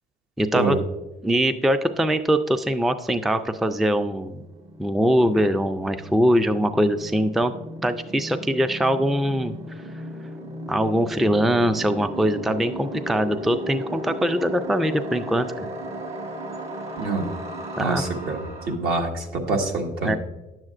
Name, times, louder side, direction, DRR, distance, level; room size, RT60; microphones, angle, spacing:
voice 1, 0.4-0.8 1.2-4.4 4.8-7.5 7.8-9.5 10.7-15.5 17.8-18.0 20.0-20.2, equal, ahead, 10 dB, 0.3 m, -22 dB
sound 1, 3.8-18.8, equal, 40° right, 1.3 m, -36 dB
voice 2, 17.8-20.2, right 3 dB, 70° right, 2 dB, 1.5 m, -26 dB
10.0 x 7.6 x 2.4 m, 1.0 s
cardioid pair, 110°, 17 cm